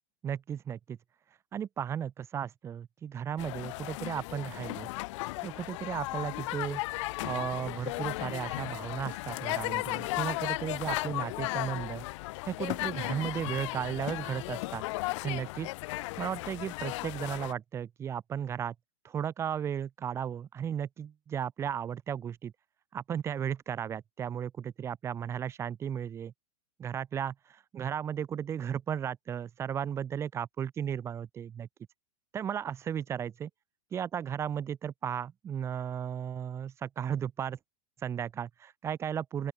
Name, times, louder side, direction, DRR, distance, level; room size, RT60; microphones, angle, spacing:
voice 1, 0.2-1.0 1.5-4.9 5.4-6.8 7.2-12.0 12.4-14.8 15.2-15.7 16.2-18.7 19.0-22.5 22.9-26.3 26.8-27.3 27.7-31.7 32.3-33.5 33.9-37.6 38.0-39.5, right 8 dB, 15° right, 0.3 m, -35 dB
sound 1, 3.4-17.5, left 21 dB, 55° left, 0.7 m, -35 dB
open air
hypercardioid pair, 115°, 19 cm